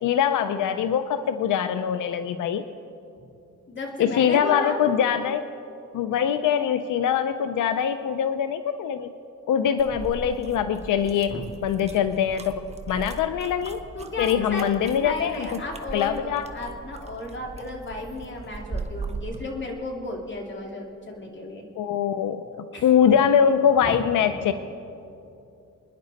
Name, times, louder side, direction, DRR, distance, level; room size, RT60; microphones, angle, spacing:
voice 1, 0.0-2.6 4.0-5.5 5.9-9.1 9.5-13.8 14.2-15.5 15.9-16.5 21.7-24.5, left 8 dB, 85° left, 10 dB, 0.6 m, -23 dB
voice 2, 3.7-4.8 11.3-11.4 12.9-13.0 13.9-14.6 15.0-21.7 22.7-22.9 23.8-24.0, left 2 dB, 40° left, 0 dB, 2.5 m, -34 dB
sound 1, 9.8-19.4, right 3 dB, 20° right, 1.0 m, -39 dB
27.5 x 10.5 x 4.1 m, 2.7 s
cardioid pair, 110°, 30 cm